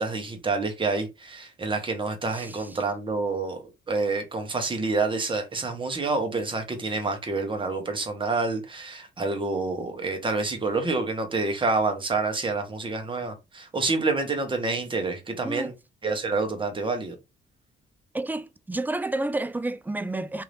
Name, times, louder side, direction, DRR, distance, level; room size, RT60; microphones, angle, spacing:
voice 1, 0.0-15.7 16.0-17.2, right 3 dB, 25° right, 1.1 m, -28 dB
voice 2, 2.3-2.8 15.4-15.7 18.1-20.4, right 2 dB, 10° right, 0.3 m, -30 dB
2.8 x 2.6 x 3.3 m
cardioid pair, 90°, 20 cm